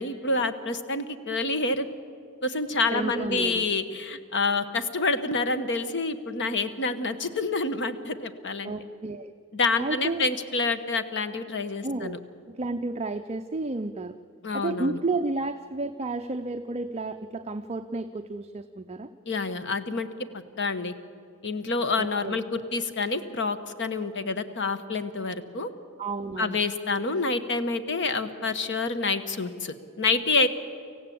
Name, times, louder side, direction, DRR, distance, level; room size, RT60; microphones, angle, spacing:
voice 1, 0.0-1.9 2.4-8.7 9.5-12.2 14.4-15.0 19.3-20.1 20.6-20.9 21.4-25.7 26.4-30.5, left 3 dB, 55° left, 11 dB, 1.1 m, -28 dB
voice 2, 2.9-3.6 8.6-9.3 9.8-10.3 11.8-12.2 12.5-14.2 14.5-19.1 22.0-22.4 26.0-26.6, right 3 dB, 30° right, 7 dB, 0.5 m, -31 dB
25.5 x 15.5 x 8.5 m, 2.4 s
head